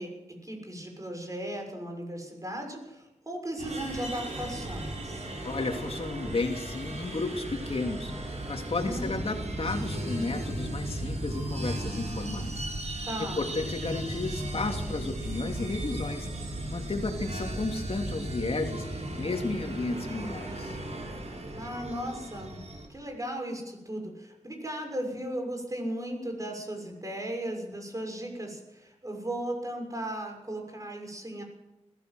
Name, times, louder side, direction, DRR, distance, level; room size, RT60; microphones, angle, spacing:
voice 1, 0.0-5.3 8.8-9.1 13.1-13.5 21.6-22.6 22.9-31.4, right 1 dB, 30° right, 3 dB, 6.4 m, -36 dB
sound 1, 3.6-22.9, right 1 dB, 65° right, 6.6 m, -36 dB
voice 2, 5.4-20.8, left 3 dB, 55° left, 3 dB, 2.8 m, -33 dB
21.0 x 16.0 x 7.8 m, 0.94 s
wide cardioid pair, 70°, 12 cm